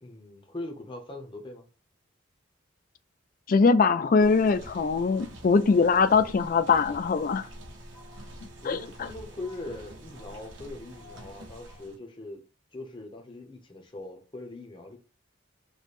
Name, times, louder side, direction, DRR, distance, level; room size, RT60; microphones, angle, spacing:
voice 1, 0.0-1.7 8.6-12.4 12.7-15.0, left 2 dB, 25° left, 0.7 m, -41 dB
voice 2, 3.5-7.5 8.6-8.8, left 4 dB, 45° left, 0.3 m, -22 dB
sound 1, 4.2-12.0, right 1 dB, 70° right, 0.8 m, -46 dB
3.2 x 2.1 x 4.1 m
head